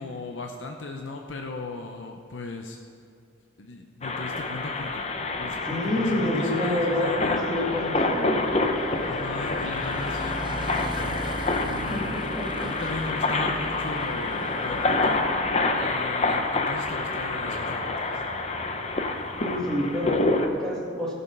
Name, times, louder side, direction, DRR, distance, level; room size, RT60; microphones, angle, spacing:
voice 1, 0.0-2.8 3.6-5.1 5.4-7.4 9.1-11.3 11.6-12.2 12.6-15.2 15.8-18.2, left 3 dB, 80° left, 3 dB, 0.7 m, -37 dB
sound 1, 4.0-20.5, left 3 dB, 35° left, 0.7 m, -27 dB
Motorcycle, 4.6-20.3, right 1 dB, 25° right, 0.6 m, -41 dB
voice 2, 5.7-8.5 11.9-12.5 19.4-21.1, left 1 dB, 5° left, -5 dB, 2.0 m, -28 dB
15.0 x 6.9 x 5.4 m, 2.3 s
head